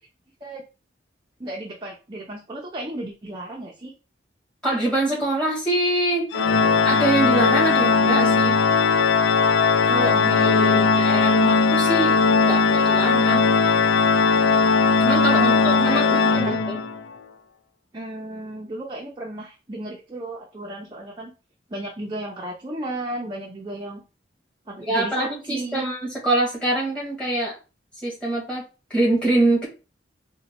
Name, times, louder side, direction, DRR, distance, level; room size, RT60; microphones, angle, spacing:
voice 1, 1.4-3.9 10.0-11.0 15.3-16.6 17.9-21.3 21.7-24.0 24.7-25.8, right 1 dB, 25° right, -2 dB, 0.5 m, -34 dB
voice 2, 4.6-6.3 6.8-8.6 9.9-12.2 12.4-13.5 15.0-16.2 16.4-16.8 24.8-27.5 28.0-29.7, right 1 dB, 5° left, -5 dB, 1.4 m, -24 dB
Organ, 6.3-17.0, left 4 dB, 80° left, 0.4 m, -18 dB
3.9 x 2.2 x 2.9 m, 0.32 s
head